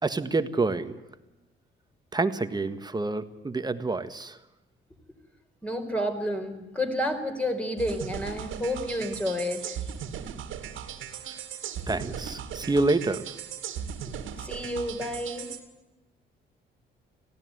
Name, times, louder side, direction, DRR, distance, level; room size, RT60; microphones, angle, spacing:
voice 1, 0.0-0.9 2.1-4.4 11.9-13.3, right 3 dB, 20° right, 10 dB, 1.6 m, -27 dB
voice 2, 5.6-9.8 14.4-15.5, left 1 dB, 5° left, 5 dB, 4.5 m, -30 dB
sound 1, 7.8-15.6, right 8 dB, 80° right, 2.3 m, -38 dB
19.0 x 15.5 x 9.6 m, 1.0 s
cardioid pair, 90°, 20 cm